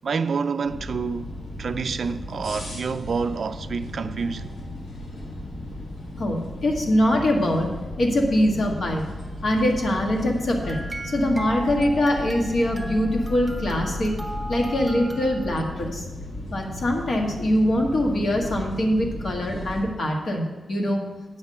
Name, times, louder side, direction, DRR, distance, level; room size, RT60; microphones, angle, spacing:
voice 1, 0.0-1.3 1.6-4.5, right 5 dB, 55° right, 0.3 m, -28 dB
sound 1, 0.6-19.9, left 1 dB, 85° left, 1.7 m, -35 dB
voice 2, 6.2-9.0 9.4-14.1 14.5-16.0 16.5-21.0, left 1 dB, 55° left, 1.6 m, -23 dB
sound 2, 10.6-15.6, right 1 dB, 10° right, 0.8 m, -38 dB
8.5 x 5.9 x 6.6 m
wide cardioid pair, 140°, 0 cm